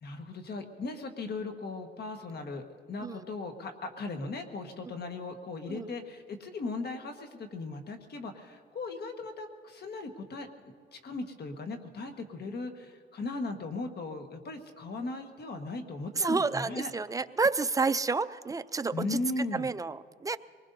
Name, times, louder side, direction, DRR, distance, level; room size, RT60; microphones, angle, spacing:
voice 1, 0.0-10.5 10.9-16.9 18.9-19.7, left 3 dB, 55° left, 5 dB, 1.6 m, -38 dB
voice 2, 16.2-20.4, right 4 dB, 15° right, 13 dB, 0.4 m, -30 dB
23.5 x 20.0 x 2.7 m, 2.1 s
cardioid pair, 90°, 20 cm